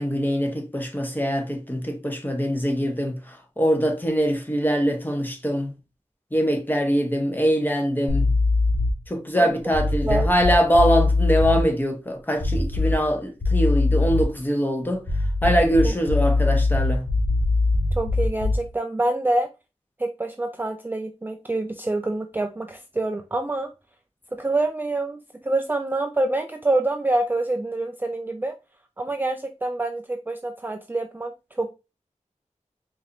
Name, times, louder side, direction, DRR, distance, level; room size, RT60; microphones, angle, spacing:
voice 1, 0.0-3.2 3.6-5.7 6.3-8.3 9.1-15.1 15.4-17.1, equal, 15° left, 0.9 m, -23 dB
sound 1, 8.1-9.0 9.7-11.6 12.4-13.1 13.4-14.4 15.0-18.7, left 3 dB, 65° left, 1.3 m, -22 dB
voice 2, 18.0-19.5 20.0-23.7 24.3-28.5 29.0-31.7, right 2 dB, 15° right, 0.3 m, -26 dB
4.7 x 2.6 x 2.8 m
wide cardioid pair, 65°, 13 cm